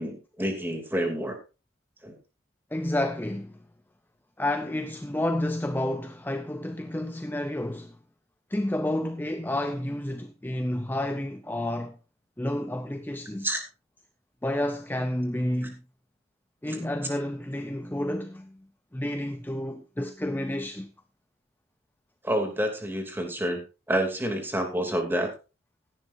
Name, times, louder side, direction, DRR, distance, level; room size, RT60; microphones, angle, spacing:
voice 1, 0.0-1.4 2.0-2.2 13.4-13.6 16.7-16.8 22.2-23.6 23.9-25.3, right 1 dB, 10° right, 2.8 m, -28 dB
voice 2, 2.7-3.5 4.4-8.0 8.5-12.0 12.4-13.5 14.4-15.8 16.6-18.6 18.9-20.9, left 1 dB, 10° left, 0.5 m, -30 dB
16.5 x 11.0 x 2.6 m
head